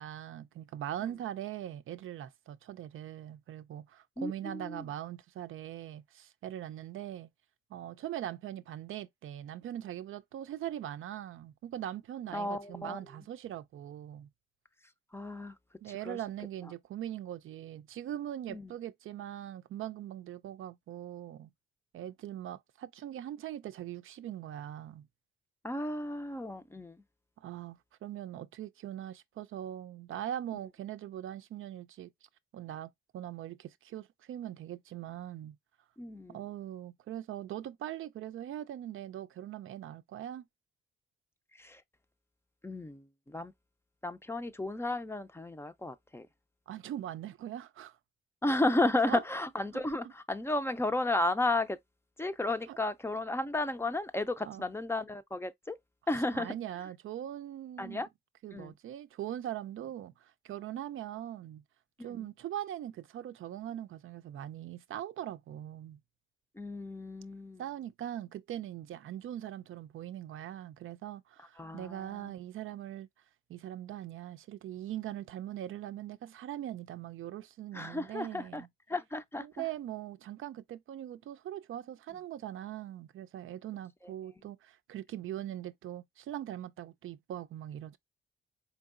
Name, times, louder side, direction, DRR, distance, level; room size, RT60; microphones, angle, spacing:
voice 1, 0.0-7.3 7.7-14.3 15.8-21.5 21.9-25.1 27.4-32.1 32.5-35.6 36.3-40.4 46.7-48.0 49.1-49.2 49.7-50.1 52.7-52.8 54.4-54.7 56.3-58.0 58.4-61.6 62.0-66.0 67.6-73.1 73.5-78.7 79.4-88.0, right 11 dB, 80° right, 0.5 m, -41 dB
voice 2, 4.2-4.9 12.3-13.0 15.1-15.5 16.0-16.2 18.5-18.7 25.6-27.0 36.0-36.4 41.6-41.8 42.6-43.5 44.0-46.3 48.4-51.8 52.2-55.8 56.1-56.5 57.8-58.1 58.5-58.7 66.6-67.6 71.6-72.3 77.7-78.6 78.9-79.7, left 2 dB, 10° left, 0.4 m, -33 dB
4.6 x 2.8 x 2.4 m
cardioid pair, 105°, 21 cm